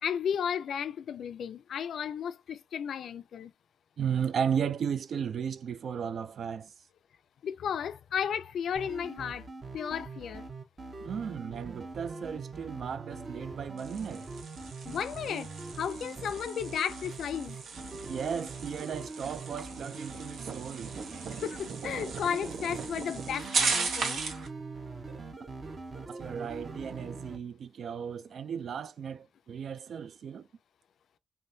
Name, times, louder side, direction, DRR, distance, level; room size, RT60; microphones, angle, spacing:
voice 1, 0.0-3.5 7.4-9.5 9.7-10.4 14.9-15.5 15.8-17.6 21.4-24.2, left 8 dB, 85° left, 0.4 m, -34 dB
voice 2, 4.0-6.7 11.0-14.3 18.1-20.9 26.1-30.5, right 7 dB, 65° right, 0.3 m, -35 dB
sound 1, 8.7-27.4, right 3 dB, 30° right, 0.7 m, -43 dB
sound 2, 13.8-24.5, right 5 dB, 80° right, 0.8 m, -37 dB
3.5 x 3.3 x 2.6 m
wide cardioid pair, 170°, 0 cm